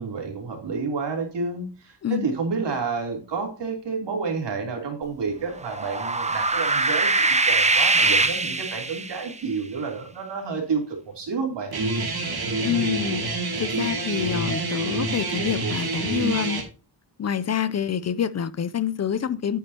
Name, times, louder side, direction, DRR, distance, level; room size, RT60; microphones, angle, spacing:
voice 1, 0.0-11.7 12.7-13.1, right 4 dB, 85° right, 3.3 m, -30 dB
sound 1, 5.6-9.3, right 3 dB, 15° right, 0.8 m, -22 dB
Guitar, 11.7-16.6, right 3 dB, 60° right, 2.6 m, -27 dB
voice 2, 12.6-13.2 13.6-16.6 17.2-19.6, left 8 dB, 40° left, 0.4 m, -27 dB
9.4 x 8.8 x 2.8 m
wide cardioid pair, 145°, 41 cm